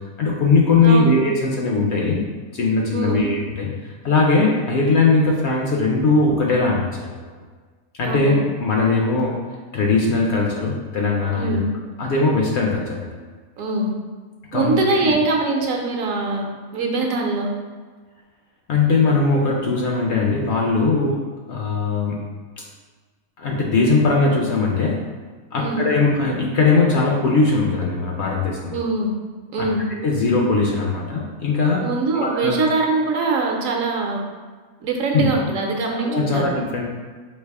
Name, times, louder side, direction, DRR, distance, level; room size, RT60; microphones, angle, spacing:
voice 1, 0.2-3.7 4.0-7.3 8.0-9.4 9.7-11.6 12.0-13.2 14.5-14.7 15.0-15.1 18.7-21.2 21.5-22.2 22.6-22.7 23.4-25.0 25.5-28.8 29.6-29.7 30.0-31.9 32.1-32.6 35.1-35.3 36.0-36.8, left 3 dB, 60° left, -1 dB, 0.7 m, -20 dB
voice 2, 0.8-1.1 2.9-3.3 8.0-8.4 11.4-11.7 13.6-13.9 14.5-17.5 25.6-25.8 28.7-29.1 29.5-29.8 31.8-34.2 34.8-36.5, right 3 dB, 70° right, 1 dB, 1.0 m, -23 dB
3.3 x 2.8 x 4.6 m, 1.4 s
omnidirectional pair, 1.5 m